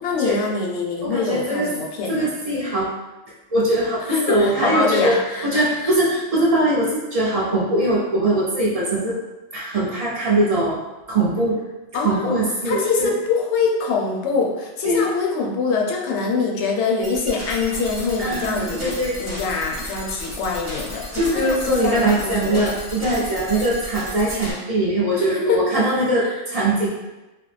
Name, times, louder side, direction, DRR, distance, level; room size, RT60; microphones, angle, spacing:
voice 1, 0.0-2.3 4.1-5.9 11.9-12.4 12.6-22.7 25.2-25.6 26.2-26.4, left 4 dB, 70° left, 0 dB, 0.8 m, -24 dB
voice 2, 1.0-1.7 2.1-2.9 3.5-5.2 5.4-9.2 9.5-10.8 11.1-11.6 11.9-13.1 14.8-15.1 18.2-19.2 21.1-26.9, right 1 dB, 50° right, -6 dB, 0.4 m, -21 dB
sound 1, 17.0-24.5, left 1 dB, 15° left, 0.5 m, -34 dB
3.3 x 2.0 x 3.2 m, 1.1 s
omnidirectional pair, 1.3 m